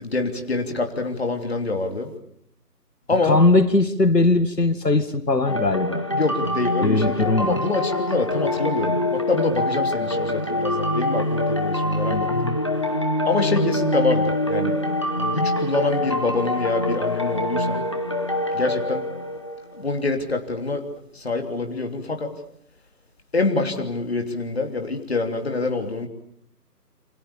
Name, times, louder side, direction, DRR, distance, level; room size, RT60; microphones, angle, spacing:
voice 1, 0.0-2.1 3.1-3.4 6.1-12.5 13.2-14.8 15.2-17.8 18.5-19.0 19.7-20.9 21.1-22.3 23.3-26.1, left 3 dB, 40° left, 3.2 m, -25 dB
voice 2, 3.2-6.0 6.8-7.6 12.1-12.6, left 2 dB, 85° left, 2.0 m, -20 dB
sound 1, 5.5-19.9, left 1 dB, 20° left, 1.1 m, -25 dB
28.0 x 26.5 x 7.0 m
figure-of-eight pair, 165°, 48 cm